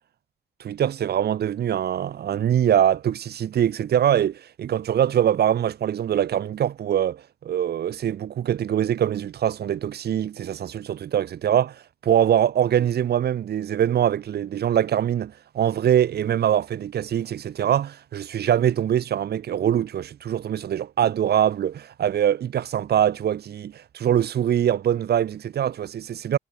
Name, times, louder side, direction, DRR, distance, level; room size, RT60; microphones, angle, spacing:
voice 1, 0.6-11.8 12.0-26.4, right 10 dB, 55° right, 2.9 m, -23 dB
cardioid pair, 120°, 19 cm